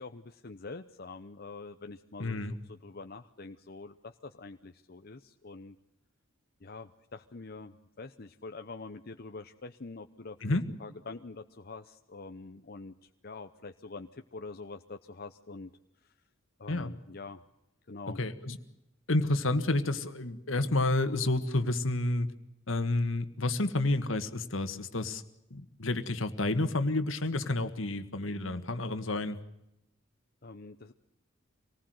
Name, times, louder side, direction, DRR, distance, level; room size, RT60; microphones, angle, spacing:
voice 1, 0.0-5.8 6.6-15.7 16.0-16.2 16.6-17.4 17.9-18.2 30.4-30.9, left 3 dB, 50° left, 6 dB, 0.8 m, -45 dB
voice 2, 2.2-2.5 10.4-10.6 16.7-16.9 18.2-18.6 19.1-22.3 22.7-25.2 25.5-29.4, left 2 dB, 75° left, 9 dB, 1.8 m, -30 dB
25.5 x 19.5 x 7.9 m, 0.85 s
head